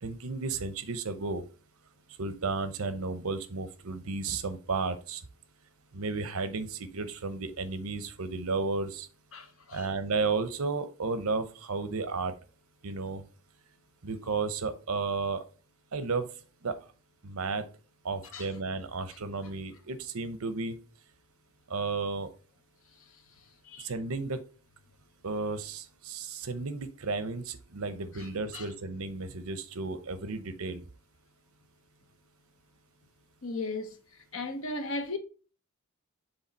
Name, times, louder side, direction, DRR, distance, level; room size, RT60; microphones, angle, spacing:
voice 1, 0.0-1.4 2.2-5.2 5.9-9.1 9.7-12.3 12.8-13.2 14.0-15.4 15.9-16.3 16.6-16.7 17.2-17.6 18.0-20.8 21.7-22.3 23.8-24.4 25.2-30.8, right 4 dB, 80° right, 0.8 m, -33 dB
voice 2, 9.3-9.9 18.3-18.5 23.7-23.9 28.1-28.3 28.5-28.7 33.4-33.9 34.3-35.2, left 2 dB, 70° left, 1.0 m, -36 dB
7.0 x 3.7 x 4.1 m
head